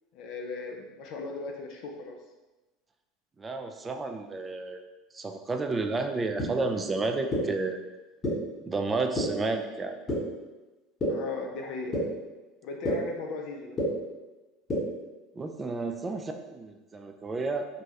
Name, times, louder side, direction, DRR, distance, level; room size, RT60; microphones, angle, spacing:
voice 1, 0.1-2.1 11.1-12.0 12.6-13.8, left 4 dB, 60° left, 3 dB, 0.4 m, -37 dB
voice 2, 3.4-4.8 5.1-7.8 8.6-10.0 15.4-17.7, right 3 dB, 25° right, 5 dB, 0.3 m, -31 dB
sound 1, 6.4-6.5 7.3-7.4 8.2-8.3 9.2-9.3 10.1-10.2 11.0-11.1 11.9-12.0 12.8-12.9 13.8-13.9 14.7-14.8, left 1 dB, 35° left, 1.0 m, -27 dB
3.0 x 2.3 x 2.8 m, 1.1 s
hypercardioid pair, 90°, 0 cm